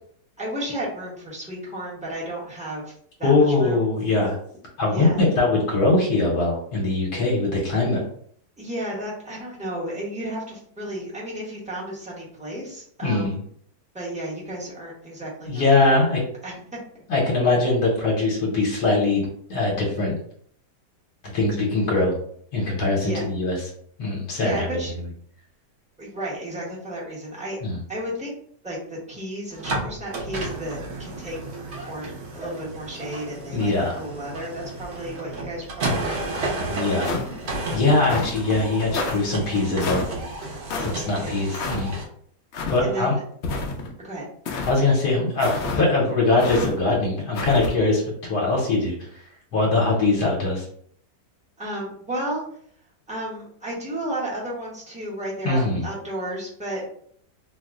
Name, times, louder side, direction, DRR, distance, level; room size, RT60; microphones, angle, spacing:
voice 1, 0.4-2.9 3.2-3.9 4.9-5.2 8.6-13.4 13.9-16.1 16.4-16.5 23.0-23.2 24.4-24.9 26.0-27.6 27.9-28.3 28.6-31.4 31.9-36.7 41.2-41.4 42.8-43.2 44.0-44.2 51.6-52.4 53.1-56.9, right 1 dB, 5° right, -7 dB, 0.5 m, -33 dB
voice 2, 3.2-4.4 4.8-8.0 13.0-13.4 15.5-16.2 17.1-19.2 19.5-20.2 21.3-22.2 22.5-23.6 24.0-24.8 27.6-27.8 33.5-34.0 36.7-37.1 37.7-40.0 40.4-41.9 42.7-43.2 44.6-48.9 49.5-50.7 55.4-55.9, left 2 dB, 70° left, -3 dB, 1.2 m, -22 dB
sound 1, 29.5-42.0, right 2 dB, 60° right, 0.7 m, -32 dB
sound 2, 37.0-37.5 38.0-38.4 38.9-39.2 39.8-40.1 40.7-40.9 41.5-41.8 42.5-42.8 43.4-43.9 44.4-44.8 45.4-45.8 46.4-46.7 47.3-47.7, left 3 dB, 85° left, 0.6 m, -28 dB
2.9 x 2.0 x 3.5 m, 0.62 s
omnidirectional pair, 1.8 m